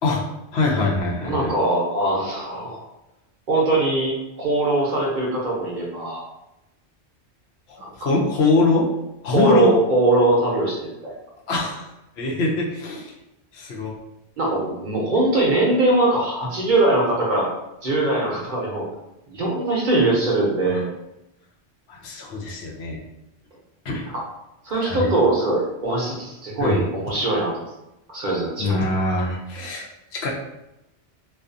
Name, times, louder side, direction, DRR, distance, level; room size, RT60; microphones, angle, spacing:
voice 1, 0.5-1.5 7.7-8.9 9.2-9.7 11.5-11.9 12.2-13.1 13.5-13.9 20.6-20.8 21.9-23.0 23.8-24.0 24.8-25.1 26.6-26.8 28.6-29.9 30.1-30.3, left 2 dB, 80° left, -2 dB, 0.9 m, -23 dB
voice 2, 1.3-2.8 3.5-6.3 7.8-8.1 9.3-11.1 14.4-17.5 17.8-18.9 19.3-20.9 24.1-24.2 24.6-27.6 28.1-28.8, right 2 dB, 55° right, -3 dB, 0.7 m, -21 dB
2.4 x 2.3 x 2.6 m, 0.91 s
omnidirectional pair, 1.1 m